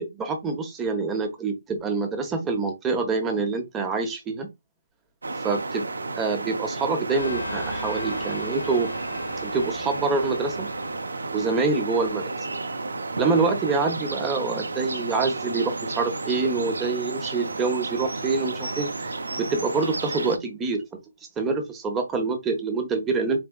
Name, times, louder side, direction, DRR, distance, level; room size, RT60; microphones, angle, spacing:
voice 1, 0.0-4.5 5.4-5.8 6.2-8.9 9.4-10.7 11.3-12.2 13.2-18.9 19.4-20.8 21.4-23.4, right 4 dB, 15° right, 1.1 m, -26 dB
sound 1, 5.2-20.4, right 3 dB, 85° right, 0.7 m, -32 dB
sound 2, 7.2-12.6, left 2 dB, 90° left, 1.5 m, -39 dB
4.4 x 3.4 x 2.4 m
hypercardioid pair, 150°, 0 cm